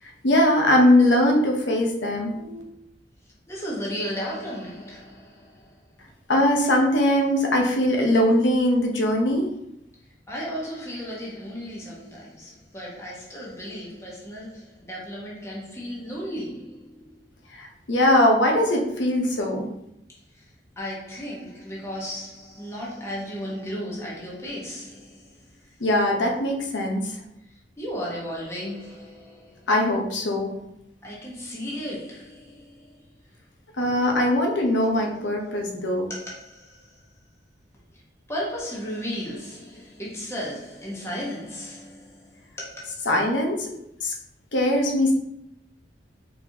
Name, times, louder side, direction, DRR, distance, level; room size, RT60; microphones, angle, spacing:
voice 1, 0.2-2.6 6.3-9.5 17.5-19.7 25.8-27.2 29.7-30.5 33.8-36.1 43.1-43.7 44.0-44.1 44.5-45.1, left 1 dB, 80° left, 1.0 m, -21 dB
voice 2, 3.5-5.8 10.3-17.2 20.3-25.7 27.5-29.7 31.0-33.0 36.1-37.0 37.9-38.0 38.3-43.1, equal, 15° left, 1.1 m, -35 dB
4.5 x 4.2 x 2.8 m
head